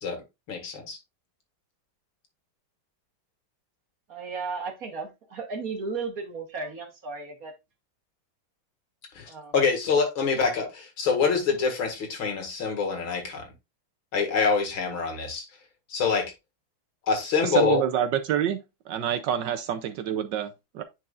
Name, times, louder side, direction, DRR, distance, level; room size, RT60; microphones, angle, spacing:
voice 1, 0.0-1.0 9.1-13.5 14.1-15.5 15.9-16.3 17.1-17.8, left 5 dB, 75° left, 2.7 m, -26 dB
voice 2, 4.1-7.5 9.3-9.5, right 4 dB, 50° right, 1.5 m, -34 dB
voice 3, 17.4-20.8, right 9 dB, 70° right, 1.2 m, -27 dB
9.7 x 4.7 x 2.4 m
omnidirectional pair, 2.2 m